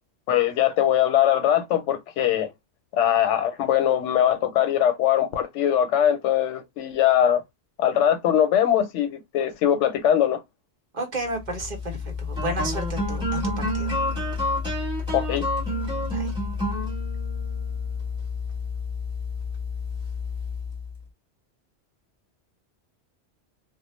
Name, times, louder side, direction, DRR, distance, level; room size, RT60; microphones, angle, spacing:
voice 1, 0.3-2.5 2.9-7.4 7.8-10.4 15.1-15.5, left 10 dB, 90° left, 0.9 m, -21 dB
voice 2, 10.9-14.0 16.1-16.3, right 1 dB, 45° right, 1.0 m, -32 dB
sound 1, 11.4-21.0, left 2 dB, 5° right, 1.1 m, -29 dB
2.3 x 2.1 x 2.9 m
omnidirectional pair, 1.2 m